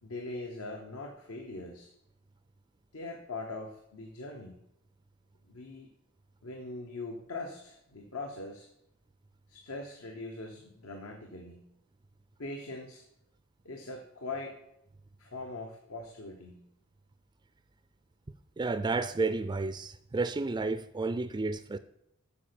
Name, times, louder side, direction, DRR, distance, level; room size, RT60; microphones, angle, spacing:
voice 1, 0.0-1.9 2.9-4.6 5.4-5.9 6.4-8.7 9.5-11.7 12.4-13.0 13.6-14.6 15.2-16.6, left 2 dB, 85° left, 1.3 m, -41 dB
voice 2, 18.6-21.8, right 3 dB, 20° right, 0.3 m, -31 dB
8.5 x 6.9 x 6.9 m
head